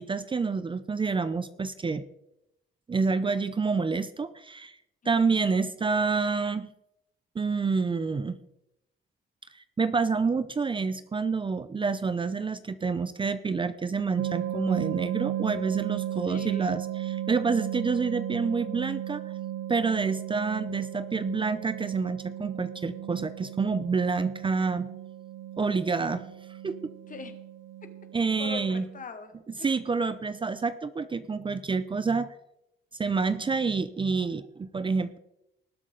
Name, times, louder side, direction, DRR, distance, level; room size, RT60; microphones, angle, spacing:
voice 1, 0.0-2.0 2.9-4.8 5.1-6.7 7.4-8.4 9.5-19.2 19.7-24.9 25.6-26.3 26.6-26.9 28.1-28.8 29.6-32.3 33.0-35.2, right 4 dB, 25° right, 13 dB, 0.6 m, -28 dB
sound 1, 14.2-29.0, right 12 dB, 80° right, 0.5 m, -35 dB
voice 2, 16.2-16.7 27.1-27.4 27.8-27.9 28.2-29.7, left 5 dB, 40° left, 8 dB, 1.7 m, -42 dB
19.5 x 7.7 x 3.9 m, 0.86 s
cardioid pair, 90°, 20 cm